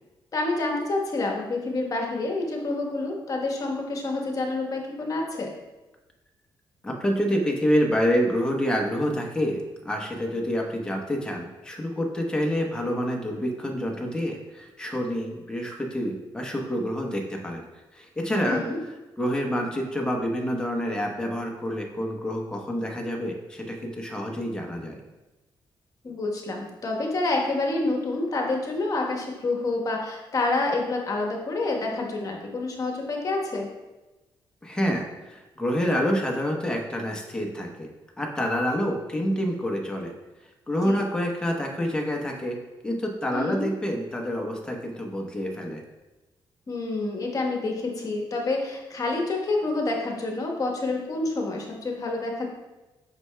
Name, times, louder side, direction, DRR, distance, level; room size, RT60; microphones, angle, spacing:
voice 1, 0.3-5.5 18.4-18.8 26.0-33.7 40.8-41.0 43.3-43.6 46.7-52.5, left 2 dB, 40° left, 1 dB, 1.2 m, -28 dB
voice 2, 6.8-17.6 17.9-18.6 19.2-25.0 34.6-37.9 38.2-40.1 40.7-42.6 42.8-45.8, equal, 10° left, 0 dB, 0.9 m, -27 dB
7.8 x 5.6 x 2.3 m, 1.1 s
cardioid pair, 110°, 9 cm